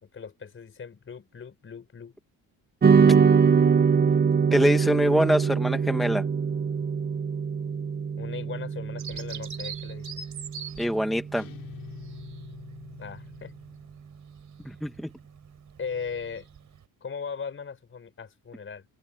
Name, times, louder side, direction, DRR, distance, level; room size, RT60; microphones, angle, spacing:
voice 1, 0.0-2.1 8.2-10.1 13.0-13.5 15.8-16.5 17.0-18.8, left 6 dB, 30° left, 4.9 m, -38 dB
sound 1, 2.8-11.3, right 6 dB, 25° right, 0.8 m, -23 dB
voice 2, 4.5-6.2 10.8-11.5 14.6-15.1, equal, ahead, 1.0 m, -24 dB
Bird vocalization bird call bird song, 9.0-16.8, right 7 dB, 50° right, 4.4 m, -44 dB
sound 2, 11.3-13.9, left 10 dB, 65° left, 7.1 m, -46 dB
open air
cardioid pair, 125°, 38 cm